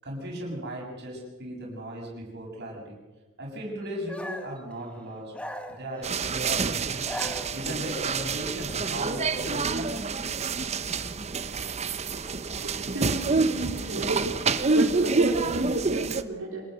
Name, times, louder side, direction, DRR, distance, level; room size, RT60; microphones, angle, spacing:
voice 1, 0.0-3.0 3.4-5.3 5.7-6.9 7.5-10.2 11.0-11.1, right 1 dB, 50° right, -1 dB, 7.2 m, -37 dB
sound 1, 4.1-4.6 5.3-6.3 6.9-7.9, left 1 dB, 5° left, 1.7 m, -38 dB
sound 2, 6.0-16.2, right 4 dB, 30° right, 0.8 m, -28 dB
voice 2, 12.6-14.3 14.7-16.6, right 2 dB, 70° right, -4 dB, 4.3 m, -32 dB
26.5 x 19.5 x 6.7 m, 1.2 s
head